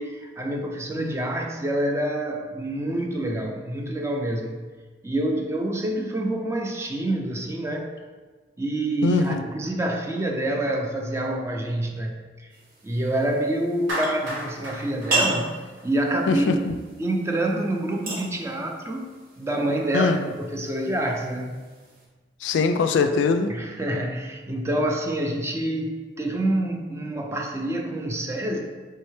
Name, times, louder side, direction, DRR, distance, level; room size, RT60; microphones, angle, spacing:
voice 1, 0.0-4.7 5.0-7.9 8.6-12.5 12.8-16.5 17.0-21.6 23.5-28.6, right 1 dB, 15° right, 1 dB, 0.4 m, -27 dB
voice 2, 9.0-9.4 16.3-16.7 19.9-20.2 22.4-23.5, left 4 dB, 75° left, 8 dB, 0.3 m, -22 dB
sound 1, 12.5-22.0, right 2 dB, 50° right, 1.0 m, -35 dB
Clapping, 13.9-16.2, equal, 85° right, 0.9 m, -33 dB
4.6 x 3.2 x 3.1 m, 1.4 s
head